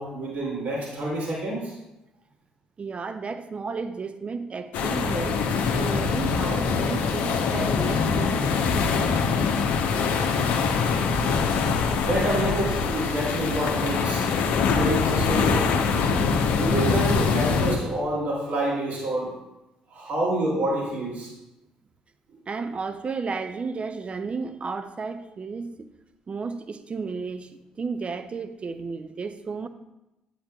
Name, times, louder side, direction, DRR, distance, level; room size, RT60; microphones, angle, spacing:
voice 1, 0.0-1.7 12.0-14.3 14.7-15.7 16.5-19.3 19.9-21.3, right 1 dB, 60° right, -4 dB, 2.6 m, -27 dB
voice 2, 2.8-9.1 22.5-25.9 26.3-29.7, right 4 dB, 35° right, 10 dB, 0.6 m, -33 dB
sound 1, 4.7-17.8, left 5 dB, 70° left, 0.7 m, -23 dB
8.6 x 8.5 x 2.3 m, 0.95 s
hypercardioid pair, 50°, 3 cm